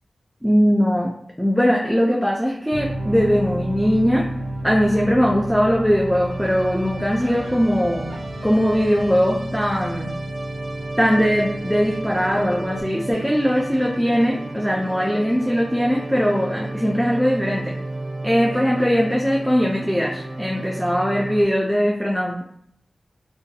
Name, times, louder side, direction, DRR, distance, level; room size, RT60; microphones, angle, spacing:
voice 1, 0.4-1.1 1.4-4.3 4.6-8.1 8.4-10.1 11.0-17.7 18.2-22.4, equal, ahead, -1 dB, 0.3 m, -20 dB
sound 1, 2.7-21.4, right 1 dB, 70° right, 0.4 m, -31 dB
2.6 x 2.2 x 2.3 m, 0.69 s
cardioid pair, 40°, 0 cm